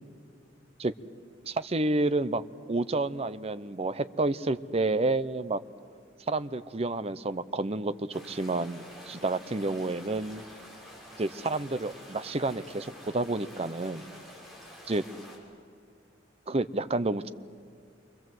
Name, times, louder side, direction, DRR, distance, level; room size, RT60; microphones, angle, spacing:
voice 1, 1.4-2.4 2.7-5.6 6.3-10.4 11.2-14.1 14.9-15.0 16.5-17.3, right 2 dB, 30° right, 13 dB, 0.7 m, -29 dB
sound 1, 8.1-15.4, equal, ahead, 6.7 m, -48 dB
28.5 x 25.0 x 7.7 m, 2.2 s
head